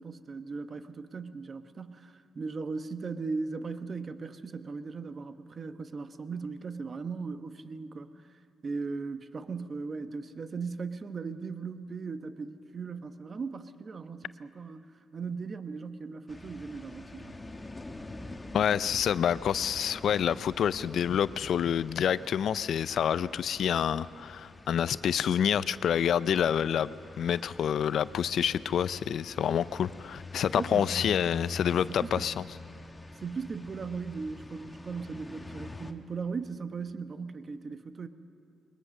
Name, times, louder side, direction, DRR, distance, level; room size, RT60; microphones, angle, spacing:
voice 1, 0.0-8.1 8.6-14.9 15.1-17.4 30.6-30.9 32.0-32.3 33.1-38.1, right 4 dB, 45° right, 10 dB, 1.1 m, -38 dB
sound 1, 16.3-35.9, left 2 dB, 20° left, 1.4 m, -45 dB
voice 2, 18.5-32.4, left 9 dB, 70° left, 17 dB, 0.5 m, -28 dB
21.5 x 21.5 x 6.6 m, 2.7 s
cardioid pair, 70°, 0 cm